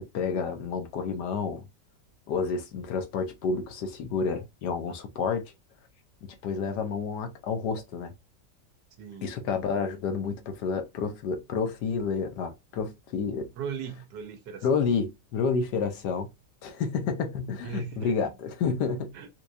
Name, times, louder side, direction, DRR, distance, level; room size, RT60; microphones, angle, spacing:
voice 1, 0.0-1.6 2.3-5.5 6.2-8.1 9.2-13.5 14.6-16.3 16.6-19.1, left 5 dB, 75° left, 1.3 m, -30 dB
voice 2, 9.0-9.3 13.6-14.7 17.6-18.3 19.1-19.3, right 7 dB, 80° right, 1.4 m, -38 dB
4.5 x 2.3 x 2.6 m
omnidirectional pair, 1.8 m